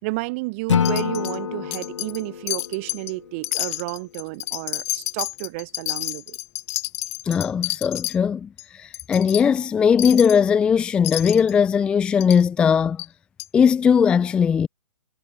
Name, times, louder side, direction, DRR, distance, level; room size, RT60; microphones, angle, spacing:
voice 1, 0.0-6.4, right 27 dB, 25° right, 4.3 m, -31 dB
Acoustic guitar / Strum, 0.7-3.8, left 7 dB, 60° left, 5.6 m, -27 dB
Wind chime, 0.8-1.4 1.7-2.2 2.5-3.1 3.4-8.2 8.6-8.7 8.9-9.4 10.0-10.4 11.0-11.5 12.2-12.4 13.0-13.1 13.4-13.5, left 21 dB, 25° left, 6.1 m, -30 dB
voice 2, 7.2-13.0 13.5-14.7, left 7 dB, 5° left, 0.8 m, -19 dB
hypercardioid pair, 170°, 17 cm